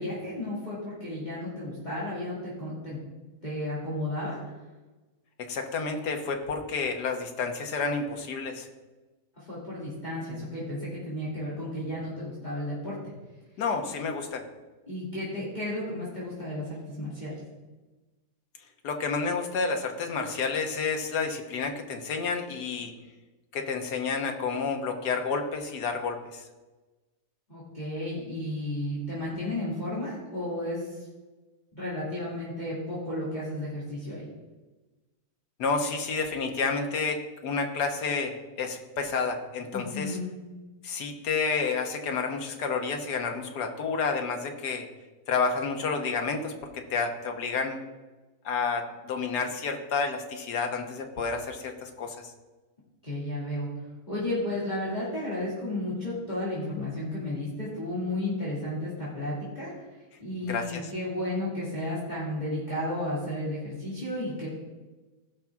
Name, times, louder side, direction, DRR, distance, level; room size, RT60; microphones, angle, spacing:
voice 1, 0.0-3.0 3.4-4.4 9.5-13.0 14.9-17.4 27.5-30.9 31.7-34.3 39.7-40.3 53.0-53.7 54.1-59.8 60.2-64.5, left 1 dB, 25° left, -9 dB, 2.6 m, -33 dB
voice 2, 5.5-8.7 13.6-14.4 18.8-22.9 23.5-26.4 35.6-40.2 40.8-44.9 45.3-47.8 48.4-52.3 60.4-60.9, left 4 dB, 85° left, 4 dB, 1.7 m, -30 dB
16.5 x 5.9 x 3.6 m, 1.2 s
omnidirectional pair, 1.7 m